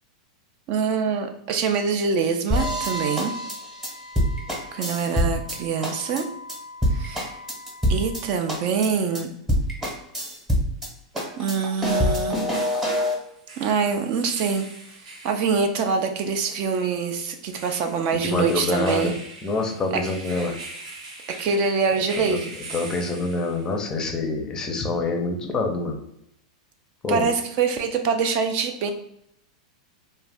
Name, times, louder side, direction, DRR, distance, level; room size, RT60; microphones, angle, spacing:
voice 1, 0.7-3.3 4.7-6.3 6.9-7.4 7.9-9.3 11.4-12.4 13.6-14.6 15.2-19.1 19.9-20.0 21.4-22.5 27.1-28.9, right 5 dB, 45° right, 5 dB, 0.3 m, -24 dB
Wind instrument woodwind instrument, 2.5-8.7, equal, 85° left, 0.5 m, -38 dB
sound 1, 2.5-5.6 5.8-6.2 6.5-6.6 6.8-8.2 8.5-8.9 9.1-9.2 9.5-10.9 11.1-13.2, equal, 10° right, 0.8 m, -25 dB
sound 2, 9.6-9.7 12.2-23.8, right 2 dB, 80° right, 1.0 m, -42 dB
voice 2, 18.1-19.1 19.4-20.5 22.2-26.0 27.0-27.2, left 3 dB, 20° left, 2 dB, 0.5 m, -26 dB
2.4 x 2.1 x 3.3 m, 0.78 s
hypercardioid pair, 135°, 4 cm